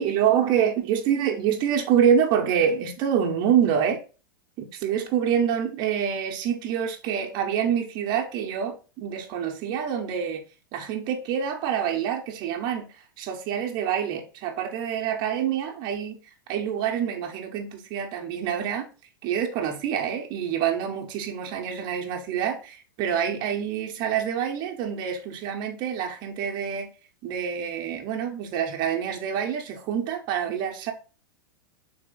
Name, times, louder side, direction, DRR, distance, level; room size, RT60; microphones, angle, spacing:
voice 1, 0.0-4.0 4.6-10.4 10.7-12.9 13.2-16.2 16.5-18.9 19.2-26.9 27.2-30.9, right 8 dB, 45° right, 0.9 m, -26 dB
3.5 x 3.2 x 3.8 m
hypercardioid pair, 115°, 11 cm